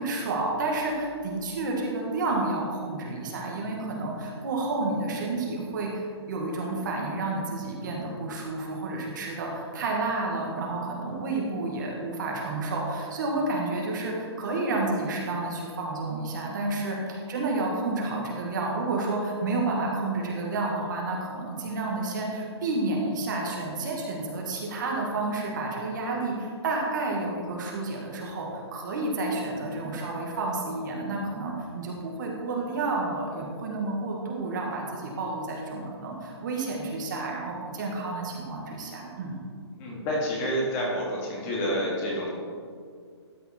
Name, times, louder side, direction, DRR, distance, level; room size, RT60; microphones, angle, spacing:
voice 1, 0.0-39.4, right 2 dB, 45° right, -1 dB, 1.7 m, -30 dB
voice 2, 39.8-42.3, equal, 20° left, -4 dB, 2.0 m, -28 dB
13.0 x 5.5 x 4.4 m, 2.1 s
hypercardioid pair, 165°, 14 cm